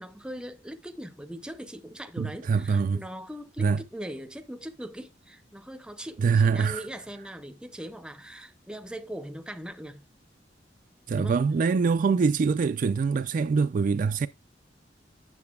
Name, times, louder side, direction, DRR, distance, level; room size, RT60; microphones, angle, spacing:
voice 1, 0.0-10.0 11.1-11.4, equal, 5° right, 0.6 m, -40 dB
voice 2, 2.2-3.0 3.6-3.8 6.2-6.8 11.1-14.3, right 5 dB, 45° right, 0.3 m, -24 dB
8.6 x 6.7 x 2.3 m
head